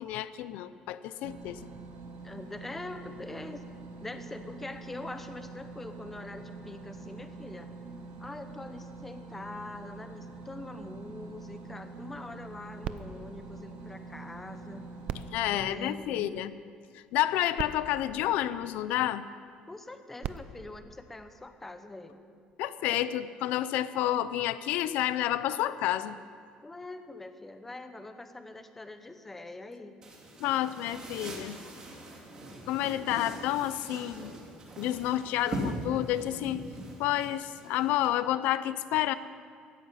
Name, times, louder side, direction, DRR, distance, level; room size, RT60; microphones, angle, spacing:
voice 1, 0.0-1.6 15.3-16.5 16.9-19.2 22.6-26.2 30.4-31.6 32.7-34.3 34.8-36.6 37.0-39.1, left 13 dB, 75° left, 14 dB, 0.5 m, -30 dB
sound 1, 1.2-15.6, right 3 dB, 70° right, 2.7 m, -45 dB
voice 2, 2.2-3.6 4.0-7.7 8.2-14.9 15.5-16.3 19.7-22.2 26.6-30.0, left 2 dB, 10° left, 8 dB, 0.8 m, -43 dB
sound 2, 12.8-14.5 15.0-16.6 17.3-17.4 17.6-19.1 20.0-21.8 22.5-22.6, right 9 dB, 50° right, 0.6 m, -43 dB
sound 3, 30.0-38.1, right 1 dB, 25° right, 2.8 m, -41 dB
16.5 x 14.0 x 5.7 m, 2.1 s
cardioid pair, 170°, 3 cm